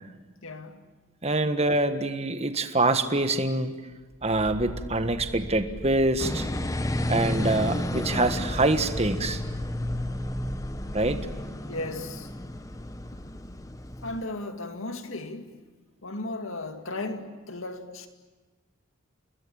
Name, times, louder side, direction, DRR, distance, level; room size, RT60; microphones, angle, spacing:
voice 1, 0.4-0.8 11.7-12.3 14.0-15.6 16.0-18.1, left 2 dB, 75° left, 2.3 m, -35 dB
voice 2, 1.2-3.7 4.2-6.5 7.1-9.4 10.9-11.3, right 2 dB, 30° right, 1.5 m, -25 dB
sound 1, 4.0-11.2, equal, 10° right, 5.1 m, -40 dB
sound 2, 6.2-14.2, left 1 dB, 15° left, 0.9 m, -32 dB
29.5 x 21.0 x 8.8 m
head